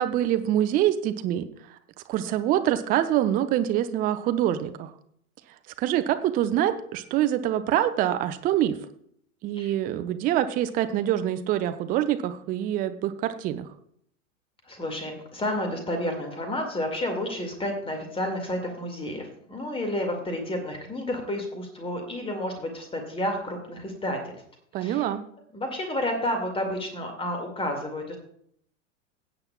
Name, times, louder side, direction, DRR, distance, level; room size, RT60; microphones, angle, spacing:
voice 1, 0.0-1.8 2.1-4.9 5.8-8.8 9.4-13.7 24.7-25.2, right 12 dB, 20° right, 10 dB, 0.6 m, -25 dB
voice 2, 14.6-24.4 24.8-25.1 25.5-28.2, left 1 dB, 15° left, 4 dB, 2.1 m, -31 dB
17.0 x 8.7 x 2.3 m, 0.66 s
figure-of-eight pair, 95°, 39 cm